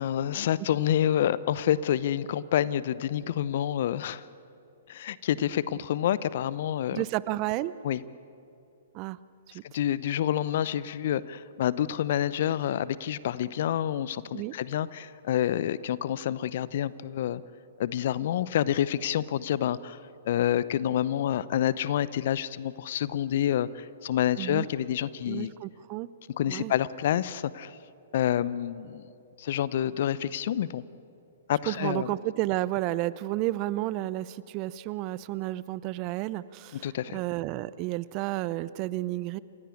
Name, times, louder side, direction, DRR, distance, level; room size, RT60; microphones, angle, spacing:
voice 1, 0.0-4.2 4.9-7.0 7.8-8.0 9.5-17.4 17.8-20.0 20.2-25.5 26.3-27.8 28.1-29.0 29.4-30.8 31.5-32.1 36.7-37.2, left 11 dB, 55° left, 18 dB, 0.8 m, -28 dB
voice 2, 6.9-7.7 8.9-9.2 14.3-14.5 24.4-24.7 25.3-26.1 26.5-26.7 31.7-39.4, right 16 dB, 35° right, 18 dB, 0.6 m, -31 dB
29.0 x 16.0 x 8.6 m, 2.6 s
figure-of-eight pair, 120°, 0 cm